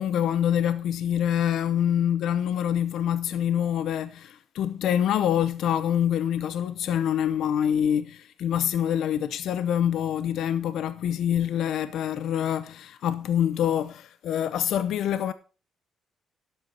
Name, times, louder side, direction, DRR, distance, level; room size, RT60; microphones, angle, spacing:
voice 1, 0.0-15.3, left 10 dB, 75° left, 0.6 m, -26 dB
11.5 x 8.0 x 4.3 m
cardioid pair, 90°, 0 cm